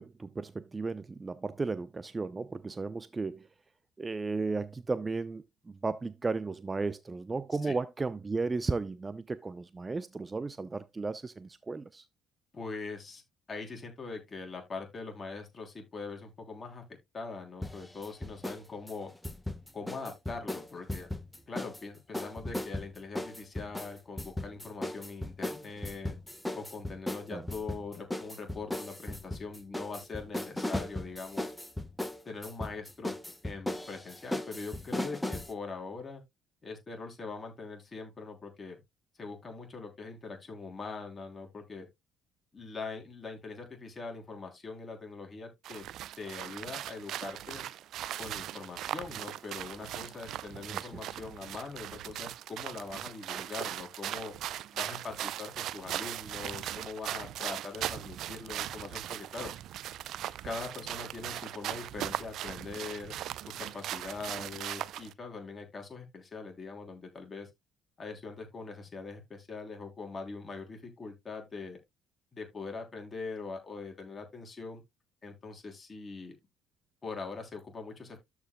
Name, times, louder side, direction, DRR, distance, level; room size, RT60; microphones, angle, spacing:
voice 1, 0.0-3.5 4.0-12.0 27.3-27.4 50.7-51.0, right 3 dB, 25° right, 0.7 m, -34 dB
voice 2, 12.5-13.2 13.5-16.8 17.1-19.1 19.7-21.1 21.5-26.2 26.5-31.5 32.2-33.1 33.4-36.2 36.6-38.8 39.2-41.9 42.5-45.8 46.2-47.7 48.2-54.3 54.7-59.5 60.4-63.1 63.6-67.5 68.0-71.8 72.3-74.8 75.2-76.4 77.0-78.2, left 4 dB, 30° left, 3.2 m, -42 dB
sound 1, 17.6-18.6 18.9-21.8 22.1-35.5, left 1 dB, 10° left, 1.3 m, -37 dB
sound 2, 45.6-65.1, right 12 dB, 60° right, 0.4 m, -39 dB
13.0 x 4.8 x 2.2 m
figure-of-eight pair, 50°, 0 cm